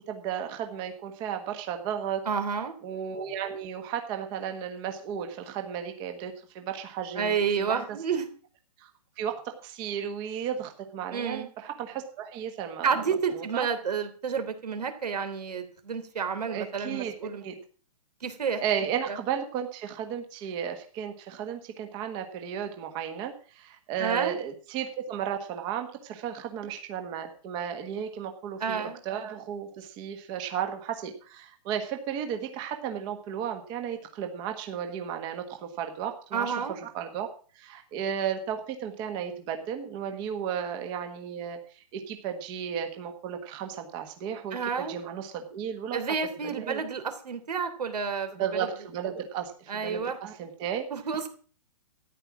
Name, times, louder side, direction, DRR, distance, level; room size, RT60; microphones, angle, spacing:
voice 1, 0.1-2.2 2.8-7.8 8.8-8.9 9.2-12.9 13.3-13.7 16.4-17.5 18.6-37.3 37.5-46.0 46.4-46.8 48.3-50.8, right 8 dB, 20° right, 6 dB, 1.4 m, -34 dB
voice 2, 2.2-2.7 7.1-8.3 11.1-11.5 12.8-17.4 18.2-18.6 24.0-24.4 28.6-29.0 36.3-36.7 44.5-44.9 45.9-48.7 49.7-50.2 50.9-51.3, right 6 dB, 85° right, 8 dB, 3.3 m, -30 dB
13.5 x 10.0 x 6.1 m, 0.41 s
hypercardioid pair, 165°, 20 cm